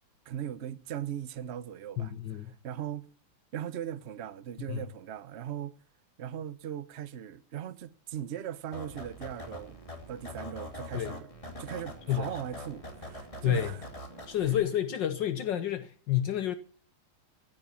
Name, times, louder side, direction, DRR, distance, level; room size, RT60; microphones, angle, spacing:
voice 1, 0.3-3.1 3.5-5.8 6.2-9.8 10.1-11.3 11.6-13.8, right 10 dB, 60° right, 0.7 m, -39 dB
voice 2, 2.0-2.5 4.7-4.8 10.9-11.1 12.1-12.3 13.4-13.7 14.3-16.6, left 11 dB, 65° left, 1.5 m, -29 dB
sound 1, 8.7-14.6, left 1 dB, 15° left, 2.8 m, -43 dB
15.0 x 8.4 x 7.1 m
omnidirectional pair, 2.2 m